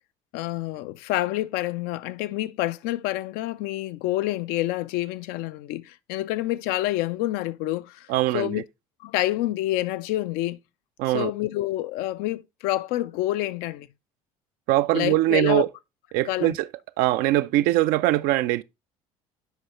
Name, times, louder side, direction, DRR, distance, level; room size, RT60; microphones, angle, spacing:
voice 1, 0.3-8.1 8.3-8.6 9.0-10.6 11.1-13.9 14.9-15.6 16.2-16.6, left 15 dB, 55° left, 0.5 m, -28 dB
voice 2, 8.1-8.6 11.0-11.3 14.7-15.7 16.1-16.7 17.0-18.6, right 16 dB, 55° right, 0.4 m, -22 dB
8.1 x 5.4 x 3.1 m
figure-of-eight pair, 60°, 18 cm